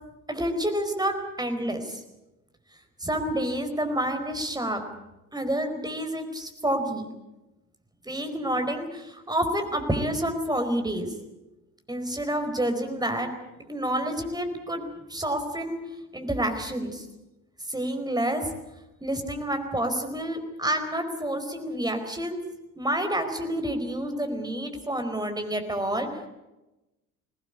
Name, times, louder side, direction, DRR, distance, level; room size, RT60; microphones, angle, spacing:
voice 1, 0.3-2.0 3.0-4.8 5.3-7.1 8.0-11.1 11.9-13.3 13.7-15.8 16.1-17.0 17.7-18.5 19.0-22.4 22.8-26.1, right 1 dB, 10° right, 6 dB, 4.7 m, -28 dB
22.5 x 19.0 x 8.3 m, 0.99 s
figure-of-eight pair, 55°, 42 cm